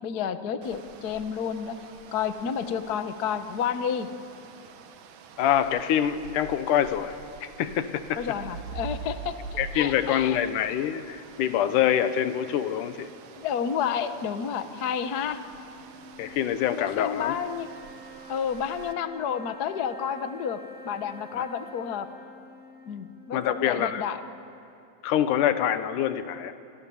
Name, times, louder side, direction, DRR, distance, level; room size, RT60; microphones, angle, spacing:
voice 1, 0.0-1.7 2.1-4.1 8.2-10.4 13.4-15.4 16.8-17.7 18.3-22.1 22.9-24.2, left 7 dB, 65° left, 9 dB, 0.9 m, -30 dB
sound 1, 0.6-18.9, right 6 dB, 80° right, 2.8 m, -45 dB
voice 2, 5.4-8.2 9.6-13.1 16.2-17.3 21.4-21.5 23.3-24.0 25.0-26.5, left 10 dB, 80° left, 11 dB, 2.5 m, -25 dB
sound 2, 15.2-24.7, equal, 5° left, 1.1 m, -48 dB
29.0 x 27.5 x 7.1 m, 2.8 s
omnidirectional pair, 3.6 m